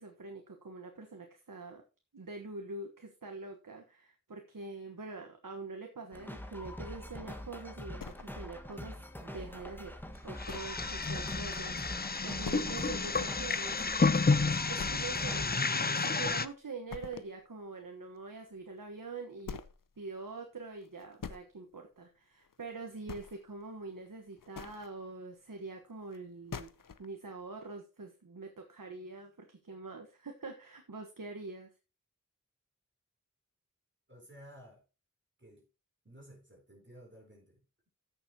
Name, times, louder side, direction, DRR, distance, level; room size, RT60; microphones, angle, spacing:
voice 1, 0.0-1.8 2.1-9.9 10.2-13.8 14.7-19.6 20.0-26.7 27.0-31.7, right 3 dB, 75° right, 1.3 m, -45 dB
sound 1, 6.1-15.5, equal, 5° left, 1.5 m, -44 dB
sound 2, 8.0-8.7 9.2-9.3 9.7-9.8 10.5-10.9 11.2-11.3 11.7-11.8 12.4-13.0 13.4-13.5 13.9-14.0 14.8-15.4 15.7-16.5 16.9-17.4 18.8-18.9 19.4-19.9 20.8-21.4 22.4-22.7 23.0-23.6 24.3-24.9 26.1-26.2 26.5-27.1, left 6 dB, 80° left, 0.8 m, -45 dB
sound 3, 10.4-16.5, left 4 dB, 30° left, 0.5 m, -31 dB
voice 2, 34.1-34.8 35.4-35.7 36.0-37.9, equal, 35° right, 4.4 m, -55 dB
14.5 x 7.0 x 2.9 m
wide cardioid pair, 45°, 32 cm